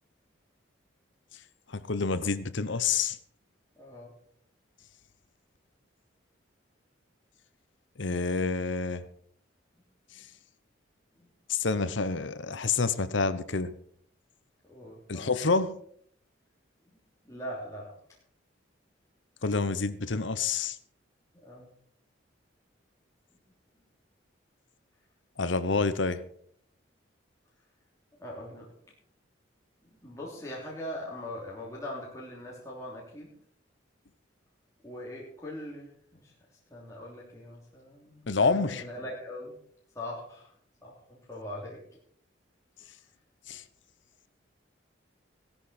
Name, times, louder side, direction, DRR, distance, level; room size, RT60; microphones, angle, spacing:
voice 1, 1.7-3.2 8.0-9.0 11.5-13.7 15.1-15.8 19.4-20.8 25.4-26.2 38.3-38.8 43.5-43.6, left 4 dB, 70° left, 14 dB, 0.9 m, -28 dB
voice 2, 3.8-4.1 10.1-10.2 11.2-11.3 14.7-15.3 16.9-17.0 17.2-18.0 21.4-21.7 28.2-28.7 29.8-33.3 34.8-36.3 36.7-39.6 39.9-40.5 40.8-41.8, left 1 dB, 15° left, -4 dB, 3.1 m, -41 dB
16.0 x 13.0 x 4.3 m, 0.63 s
head